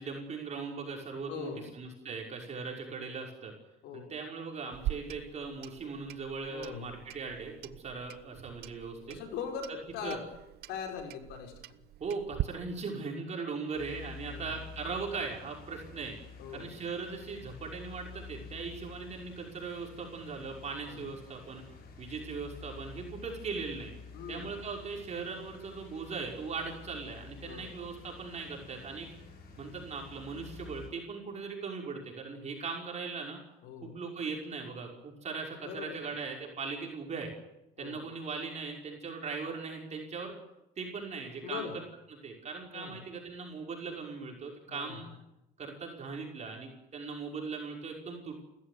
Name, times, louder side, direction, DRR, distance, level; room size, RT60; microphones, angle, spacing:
voice 1, 0.0-3.5 3.9-9.2 10.0-10.2 12.0-16.2 16.5-21.6 22.0-23.9 24.3-29.1 29.6-33.4 33.8-37.3 37.8-40.3 40.8-41.8 42.2-45.1 45.6-48.4, right 4 dB, 40° right, 0 dB, 5.9 m, -39 dB
voice 2, 1.3-1.7 3.8-4.1 6.5-7.0 9.1-10.2 10.7-11.5 14.3-14.6 16.4-16.7 20.9-21.1 24.1-24.5 27.4-27.7 33.6-34.0 35.6-36.2 37.8-38.0 41.4-41.8 42.7-43.0 44.7-45.0, left 7 dB, 90° left, 3 dB, 5.4 m, -41 dB
Clock, 4.7-12.4, right 16 dB, 70° right, 0.8 m, -42 dB
sound 1, 13.7-30.9, left 5 dB, 65° left, 6.9 m, -49 dB
29.5 x 14.5 x 9.7 m, 0.92 s
cardioid pair, 110°, 17 cm